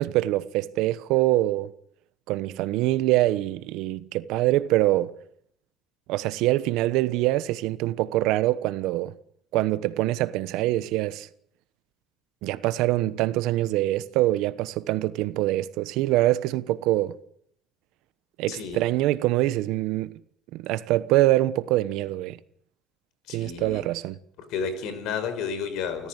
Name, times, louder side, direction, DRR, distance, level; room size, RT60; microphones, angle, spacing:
voice 1, 0.0-1.7 2.3-5.1 6.1-9.1 9.5-11.3 12.4-17.1 18.4-20.2 20.5-22.4 23.3-24.2, right 16 dB, 80° right, 1.1 m, -24 dB
voice 2, 18.5-18.8 23.3-23.8 24.5-26.1, left 6 dB, 75° left, 5.0 m, -31 dB
29.5 x 14.5 x 8.2 m
cardioid pair, 120°, 0 cm